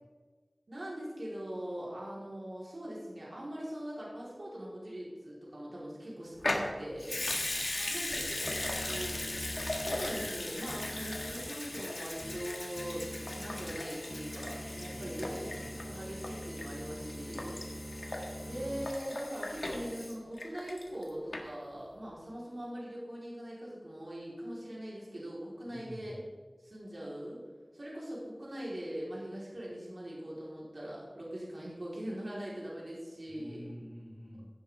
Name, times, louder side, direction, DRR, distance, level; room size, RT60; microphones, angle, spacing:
voice 1, 0.7-7.2 7.9-8.5 8.8-9.2 9.9-17.6 18.4-26.2 26.6-27.4 27.7-33.7, equal, 70° right, -6 dB, 4.1 m, -41 dB
Water tap faucet / Sink (filling or washing) / Liquid, 6.4-21.0 21.3-21.4, left 2 dB, 75° left, 1.7 m, -38 dB
voice 2, 7.5-9.3 14.9-15.9 25.6-26.1 33.3-34.5, equal, 20° left, -7 dB, 3.3 m, -49 dB
sound 1, 8.4-18.8, equal, 20° right, 0.9 m, -45 dB
15.5 x 10.5 x 3.6 m, 1.4 s
wide cardioid pair, 55°, 0 cm